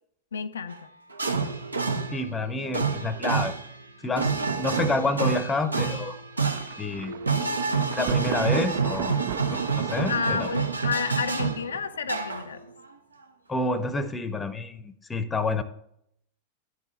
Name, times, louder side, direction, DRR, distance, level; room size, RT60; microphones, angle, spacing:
voice 1, 0.3-0.9 7.4-7.5 10.1-12.6, left 6 dB, 70° left, 9 dB, 0.4 m, -30 dB
sound 1, 0.7-0.8 1.1-11.8 12.1-12.9, right 5 dB, 80° right, 0.7 m, -28 dB
voice 2, 2.1-3.5 4.0-6.2 6.8-7.2 7.9-9.2 9.5-10.5 13.5-15.6, left 2 dB, 15° left, 13 dB, 0.7 m, -28 dB
Thunder, 6.5-12.3, right 12 dB, 50° right, 0.3 m, -37 dB
9.9 x 4.8 x 5.7 m, 0.74 s
figure-of-eight pair, 90°, 0 cm